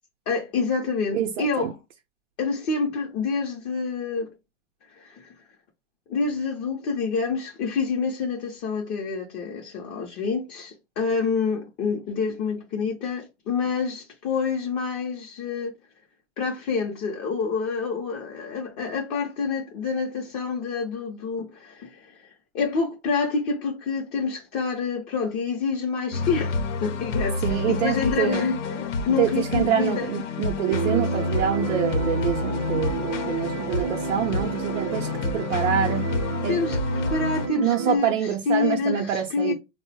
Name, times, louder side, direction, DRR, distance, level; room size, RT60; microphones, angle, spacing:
voice 1, 0.3-1.8 2.4-4.3 4.9-5.3 6.1-15.8 16.4-22.3 22.5-30.1 36.5-36.8 37.1-39.5, left 5 dB, 30° left, 0.5 m, -27 dB
voice 2, 1.1-1.7 27.4-28.5 29.2-36.1 36.4-36.5 37.6-39.5, right 10 dB, 85° right, 0.6 m, -26 dB
sound 1, 26.1-37.5, left 4 dB, 75° left, 0.7 m, -29 dB
sound 2, 30.7-38.0, right 7 dB, 35° right, 0.4 m, -31 dB
3.6 x 2.0 x 2.7 m
hypercardioid pair, 125°, 36 cm